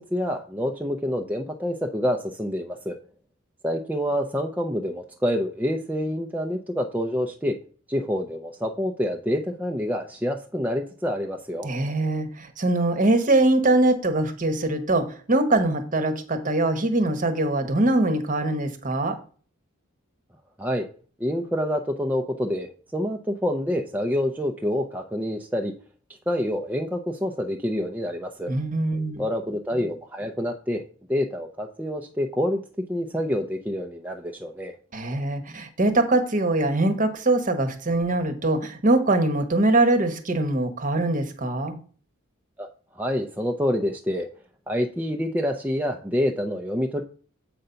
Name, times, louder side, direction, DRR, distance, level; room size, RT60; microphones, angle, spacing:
voice 1, 0.0-3.0 3.6-7.6 7.9-11.7 20.6-20.9 21.2-25.7 26.3-28.5 29.2-30.8 31.1-32.6 32.9-34.7 42.6-42.7 42.9-44.3 44.7-47.0, equal, 10° right, 3 dB, 0.5 m, -27 dB
voice 2, 11.6-19.2 28.5-29.2 34.9-41.8, right 2 dB, 40° right, 8 dB, 1.0 m, -22 dB
7.7 x 3.9 x 5.6 m, 0.41 s
head